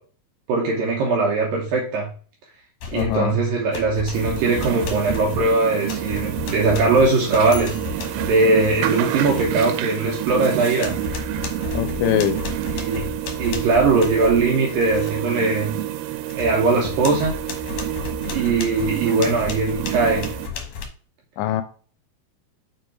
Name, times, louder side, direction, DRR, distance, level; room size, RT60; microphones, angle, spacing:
voice 1, 0.5-2.1 2.9-7.8 8.2-11.0 12.7-13.1 13.4-15.7 16.3-17.3 18.3-20.3, right 3 dB, 75° right, -1 dB, 2.1 m, -20 dB
sound 1, 2.8-3.3 3.7-10.5 10.8-15.2 15.6-15.7 16.1-20.9, left 6 dB, 65° left, 1.9 m, -33 dB
voice 2, 2.9-3.4 11.7-12.4 19.1-19.3 21.4-21.6, left 12 dB, 85° left, 10 dB, 2.7 m, -23 dB
sound 2, 4.1-20.5, right 14 dB, 90° right, 3.2 m, -28 dB
7.1 x 4.8 x 4.7 m, 0.42 s
omnidirectional pair, 5.4 m